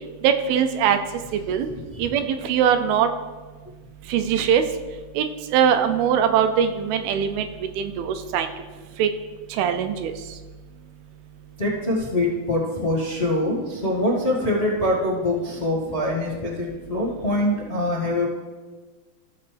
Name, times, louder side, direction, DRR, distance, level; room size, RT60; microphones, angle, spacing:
voice 1, 0.2-1.0 1.5-1.7 2.0-3.1 4.1-4.6 5.2-5.3 5.5-7.5 7.8-8.5 9.0-9.1 9.6-10.1, right 8 dB, 80° right, 7 dB, 2.4 m, -21 dB
voice 2, 11.6-18.3, left 1 dB, 35° left, -9 dB, 0.9 m, -24 dB
16.0 x 6.8 x 3.4 m, 1.3 s
omnidirectional pair, 4.5 m